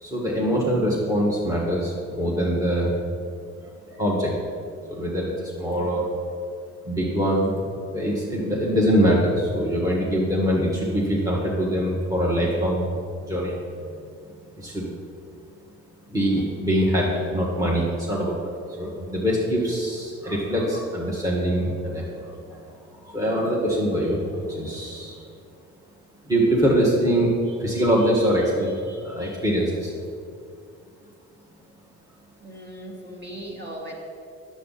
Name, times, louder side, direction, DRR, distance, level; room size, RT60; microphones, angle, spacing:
voice 1, 0.0-2.9 3.6-4.3 4.9-6.1 6.8-7.6 7.9-12.9 13.2-13.5 14.6-14.9 16.1-22.7 23.0-25.2 26.3-29.9, equal, 10° right, -5 dB, 1.5 m, -23 dB
voice 2, 32.4-33.9, right 1 dB, 35° right, -2 dB, 2.1 m, -38 dB
9.3 x 7.3 x 4.1 m, 2.3 s
cardioid pair, 90°, 30 cm